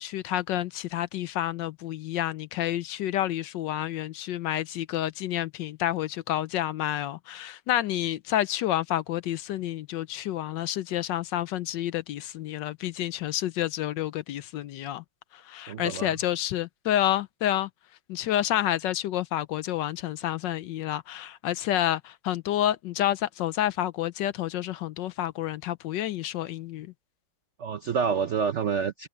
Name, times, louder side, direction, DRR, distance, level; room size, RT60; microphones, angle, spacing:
voice 1, 0.0-15.0 15.3-17.7 18.1-26.9, left 12 dB, 75° left, 1.2 m, -29 dB
voice 2, 15.7-16.1 27.6-29.1, right 6 dB, 75° right, 0.6 m, -28 dB
omnidirectional pair, 2.2 m